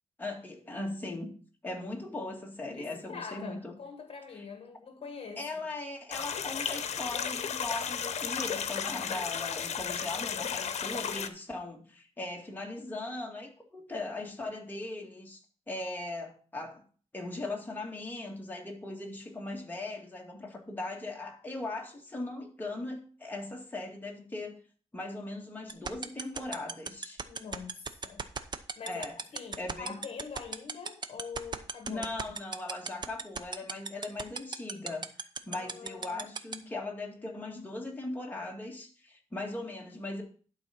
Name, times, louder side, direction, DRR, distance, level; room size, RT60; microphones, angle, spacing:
voice 1, 0.2-1.3 1.6-3.7 4.3-4.4 5.4-15.4 15.7-16.8 17.1-24.6 24.9-27.2 28.8-29.2 29.6-30.0 31.9-40.2, left 2 dB, 15° left, 2.1 m, -39 dB
voice 2, 2.6-5.5 27.3-28.3 28.8-29.0 29.3-32.1 35.5-36.3, left 5 dB, 55° left, 1.2 m, -44 dB
sound 1, 6.1-11.3, left 7 dB, 70° left, 0.9 m, -34 dB
sound 2, 25.7-36.5, right 5 dB, 40° right, 0.8 m, -34 dB
11.5 x 4.1 x 6.0 m
wide cardioid pair, 115°, 12 cm